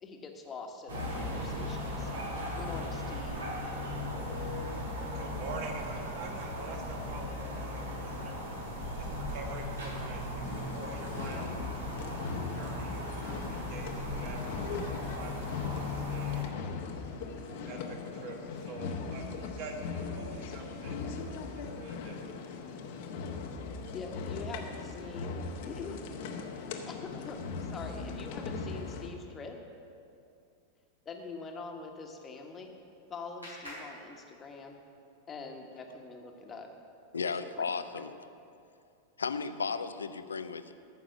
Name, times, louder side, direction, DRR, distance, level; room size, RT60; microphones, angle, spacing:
voice 1, 0.0-3.4 23.9-26.1 26.9-29.6 31.0-32.7 33.1-34.8 35.3-36.7 37.1-38.0, left 4 dB, 20° left, 1.3 m, -44 dB
sound 1, 0.9-16.4, left 1 dB, 70° right, 2.2 m, -37 dB
voice 2, 5.0-8.4 8.9-11.5 12.4-16.4 17.3-21.0 21.5-22.2, right 3 dB, 45° right, 1.7 m, -46 dB
sound 2, 10.4-29.1, left 4 dB, 50° left, 1.0 m, -39 dB
Clapping, 32.3-34.9, equal, 85° right, 3.1 m, -50 dB
voice 3, 37.1-38.1 39.2-40.7, left 5 dB, 75° left, 0.5 m, -34 dB
14.0 x 6.1 x 7.0 m
figure-of-eight pair, 90°, 0 cm